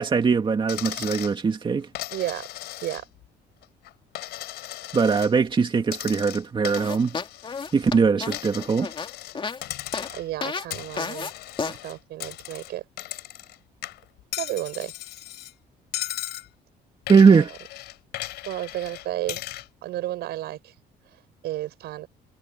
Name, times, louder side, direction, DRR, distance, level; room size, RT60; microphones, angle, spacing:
voice 1, 0.0-1.9 4.9-7.2 7.7-8.9 17.1-17.5, right 5 dB, 30° right, 2.3 m, -20 dB
Coin (dropping), 0.7-1.4 2.0-3.3 3.6-5.3 5.9-7.9 8.3-9.4 9.6-10.3 10.7-13.6 13.8-15.5 15.9-16.5 17.1-19.7, left 15 dB, 80° left, 4.1 m, -37 dB
voice 2, 2.1-2.5 2.8-3.1 10.1-11.3 11.6-12.8 14.4-14.9 17.3-17.5 18.5-19.4 19.8-20.7 21.4-22.1, right 14 dB, 75° right, 7.0 m, -32 dB
sound 1, 6.8-9.6 9.9-10.1 10.4-10.7 11.0-11.3 11.6-11.8, left 5 dB, 30° left, 3.0 m, -31 dB
cardioid pair, 110°, 17 cm